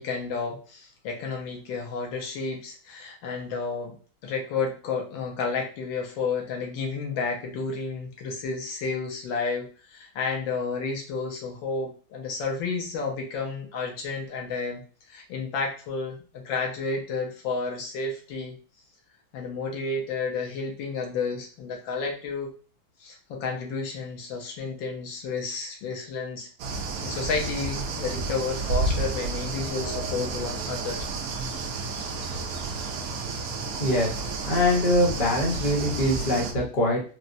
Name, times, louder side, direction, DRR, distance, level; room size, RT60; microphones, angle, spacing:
voice 1, 0.0-4.0 4.2-14.8 15.1-18.6 19.3-22.5 23.0-26.5 27.0-31.1, left 4 dB, 90° left, 1 dB, 1.6 m, -31 dB
sound 1, 26.6-36.5, right 3 dB, 75° right, 0.8 m, -31 dB
voice 2, 33.8-34.1 34.5-37.0, left 1 dB, 35° left, -2 dB, 0.8 m, -23 dB
4.1 x 2.0 x 2.6 m, 0.38 s
omnidirectional pair, 2.1 m